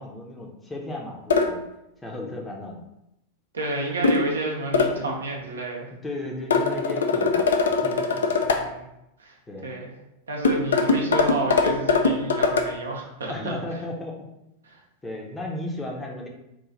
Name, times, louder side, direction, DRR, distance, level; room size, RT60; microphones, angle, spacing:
voice 1, 0.0-1.6 2.0-2.8 4.6-5.2 6.0-8.2 9.5-9.7 13.3-14.3 15.0-16.3, left 1 dB, 10° left, -1 dB, 0.6 m, -35 dB
sound 1, 1.3-1.5 4.0-4.3 4.7-5.0 6.5-8.6 10.4-12.7, left 4 dB, 65° left, 0.4 m, -21 dB
voice 2, 3.5-5.9 8.3-8.9 9.2-9.4 9.6-9.9 10.3-13.5 14.7-14.8, right 2 dB, 70° right, 0 dB, 0.7 m, -31 dB
3.1 x 2.4 x 3.7 m, 0.86 s
figure-of-eight pair, 90°, 0 cm